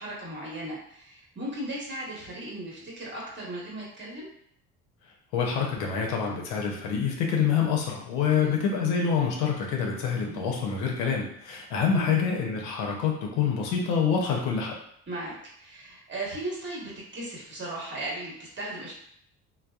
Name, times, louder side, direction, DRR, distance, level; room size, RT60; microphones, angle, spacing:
voice 1, 0.0-4.3 8.3-8.6 10.2-10.5 11.9-12.1 15.1-18.9, right 1 dB, 30° right, -4 dB, 1.1 m, -37 dB
voice 2, 5.3-14.7, left 6 dB, 80° left, 0 dB, 0.6 m, -26 dB
2.7 x 2.0 x 2.3 m, 0.69 s
supercardioid pair, 70°, 39 cm